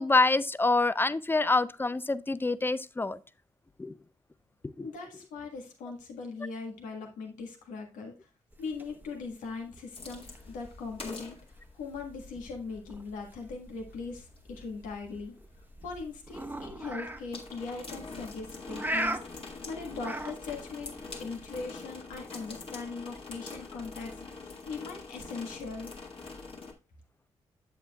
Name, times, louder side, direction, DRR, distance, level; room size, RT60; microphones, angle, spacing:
voice 1, 0.0-3.2 3.8-3.9 4.8-4.9, left 3 dB, 15° left, 0.5 m, -26 dB
voice 2, 4.8-8.3 8.6-11.4 11.7-15.3 15.8-20.9 21.2-24.2 24.7-25.9, left 4 dB, 85° left, 1.5 m, -40 dB
sound 1, 8.5-21.7, right 1 dB, 15° right, 1.0 m, -41 dB
sound 2, 9.9-26.7, left 3 dB, 45° left, 2.0 m, -45 dB
7.9 x 7.6 x 2.3 m
supercardioid pair, 45°, 13 cm